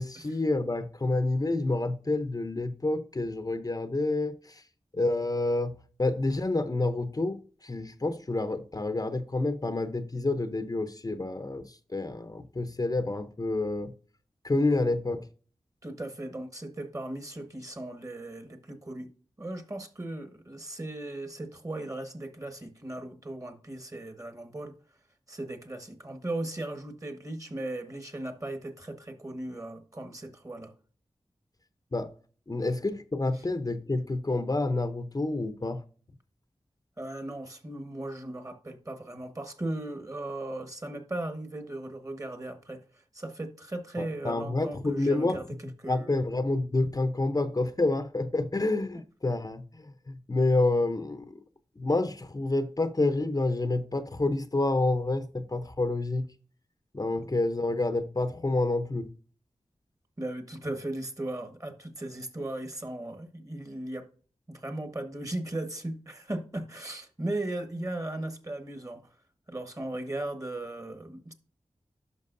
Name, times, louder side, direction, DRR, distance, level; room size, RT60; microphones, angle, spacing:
voice 1, 0.0-4.6 4.9-5.7 6.0-13.9 14.4-15.2 31.9-32.1 32.5-35.8 44.0-45.4 45.8-51.4 51.8-56.2 56.9-59.1, left 2 dB, 30° left, 0.7 m, -28 dB
voice 2, 15.8-19.1 19.4-24.7 25.3-30.7 37.0-42.8 43.1-45.5 45.8-46.1 48.9-49.0 60.2-64.1 64.5-69.1 69.5-71.3, right 1 dB, 30° right, 1.5 m, -37 dB
10.5 x 6.0 x 2.6 m
wide cardioid pair, 55°, 12 cm